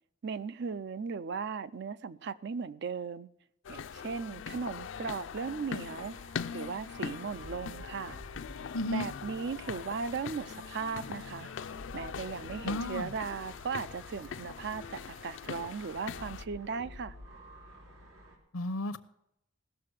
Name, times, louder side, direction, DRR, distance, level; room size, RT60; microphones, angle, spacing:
voice 1, 0.2-3.3 3.7-6.2 6.5-8.2 8.9-11.5 11.9-17.1, right 5 dB, 55° right, 0.4 m, -37 dB
sound 1, 3.6-16.4, left 6 dB, 65° left, 0.4 m, -42 dB
sound 2, 4.9-18.4, equal, 90° right, 3.3 m, -52 dB
voice 2, 8.7-9.1 12.6-13.1 18.5-19.0, left 1 dB, 85° left, 0.8 m, -33 dB
16.5 x 6.7 x 6.4 m
head